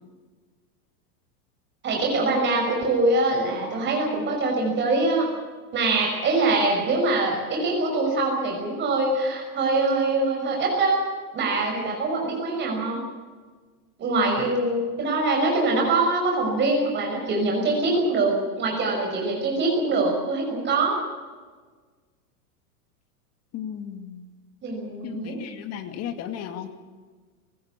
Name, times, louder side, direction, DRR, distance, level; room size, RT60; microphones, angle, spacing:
voice 1, 1.8-5.3 5.7-11.0 11.3-13.0 14.0-21.0 24.6-25.4, right 2 dB, 25° right, 0 dB, 5.8 m, -23 dB
voice 2, 23.5-24.3 25.0-26.7, left 9 dB, 35° left, 7 dB, 2.4 m, -35 dB
22.5 x 16.5 x 8.4 m, 1.4 s
supercardioid pair, 150°, 46 cm